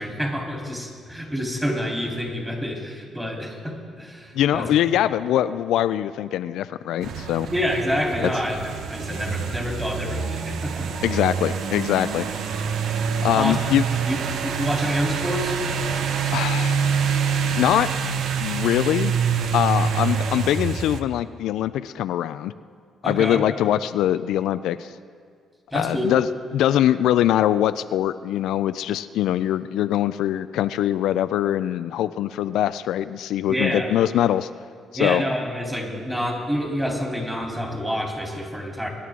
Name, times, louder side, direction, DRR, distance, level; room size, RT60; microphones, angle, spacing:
voice 1, 0.0-4.7 7.5-10.9 13.4-13.6 14.0-14.2 14.4-15.6 23.0-23.4 25.7-26.1 33.5-33.9 35.0-38.9, equal, 10° right, -1 dB, 3.4 m, -27 dB
voice 2, 4.3-7.5 8.2-8.3 11.0-12.3 13.2-13.8 16.3-16.8 17.6-17.9 18.4-19.1 19.5-22.5 23.0-24.9 25.7-26.3 26.5-34.5 34.9-35.2, left 12 dB, 85° left, 12 dB, 0.3 m, -22 dB
sound 1, 7.0-21.0, right 6 dB, 75° right, 0.8 m, -26 dB
23.5 x 11.0 x 3.7 m, 2.1 s
cardioid pair, 90°, 0 cm